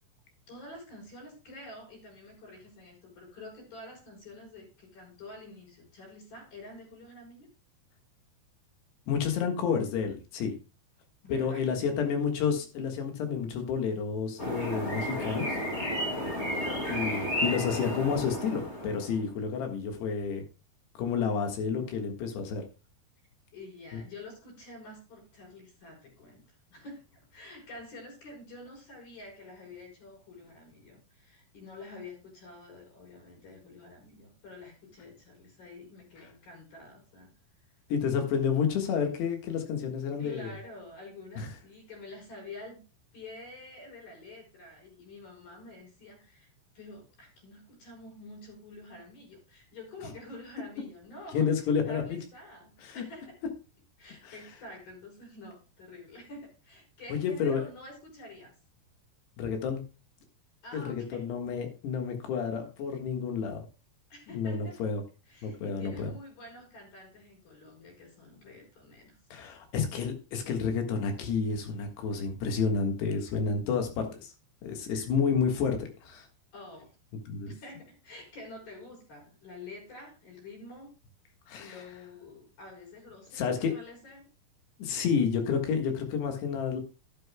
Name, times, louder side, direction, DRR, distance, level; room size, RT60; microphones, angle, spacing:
voice 1, 0.5-7.5 11.2-12.0 16.4-16.9 21.8-22.0 23.5-26.4 26.7-37.3 40.2-42.8 43.1-51.5 51.8-53.4 54.0-58.5 60.6-61.3 64.1-64.8 65.3-69.2 74.8-75.0 76.5-76.9 77.5-80.9 81.5-84.2, left 2 dB, 60° left, 0 dB, 6.2 m, -48 dB
voice 2, 9.1-10.5 11.3-15.6 16.9-20.4 21.0-22.6 23.9-24.0 37.9-40.5 41.4-41.5 51.3-52.2 52.8-53.0 54.2-54.3 57.1-57.7 59.4-59.8 60.7-63.7 64.3-65.0 65.4-66.1 69.3-74.3 74.6-76.3 77.3-77.5 81.5-81.8 83.3-83.7 84.8-86.8, left 6 dB, 80° left, 4 dB, 3.7 m, -30 dB
sound 1, 14.4-19.2, equal, 30° left, 1.4 m, -32 dB
12.0 x 11.5 x 2.2 m, 0.32 s
omnidirectional pair, 4.8 m